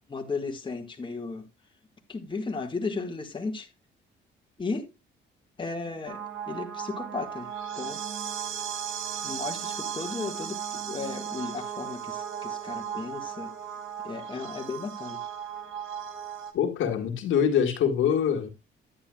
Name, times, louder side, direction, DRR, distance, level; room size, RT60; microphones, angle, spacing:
voice 1, 0.0-1.5 2.1-3.7 4.6-4.9 5.6-7.5 7.8-8.0 9.2-13.5 14.0-15.2, left 4 dB, 25° left, 1.6 m, -35 dB
sound 1, 6.1-16.5, right 8 dB, 80° right, 1.4 m, -36 dB
voice 2, 16.5-18.5, left 8 dB, 80° left, 1.7 m, -24 dB
10.0 x 9.6 x 2.3 m
cardioid pair, 90°, 20 cm